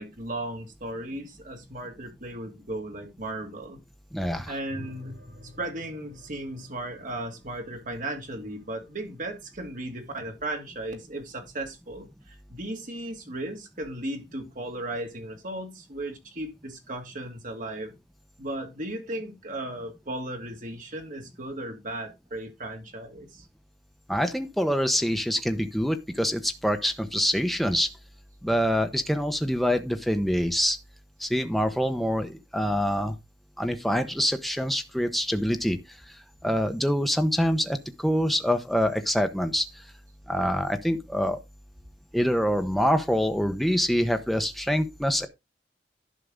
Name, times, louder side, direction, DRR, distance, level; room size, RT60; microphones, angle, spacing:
voice 1, 0.0-3.8 4.4-5.2 5.6-18.0 18.4-23.5, right 1 dB, 50° right, 2.4 m, -36 dB
voice 2, 4.1-4.5 24.1-27.9 28.4-30.8 31.2-33.2 33.6-35.8 36.4-39.7 40.3-41.4 42.1-45.3, equal, ahead, 1.0 m, -25 dB
sound 1, 4.7-9.4, left 1 dB, 80° right, 6.8 m, -49 dB
11.5 x 5.8 x 3.8 m
head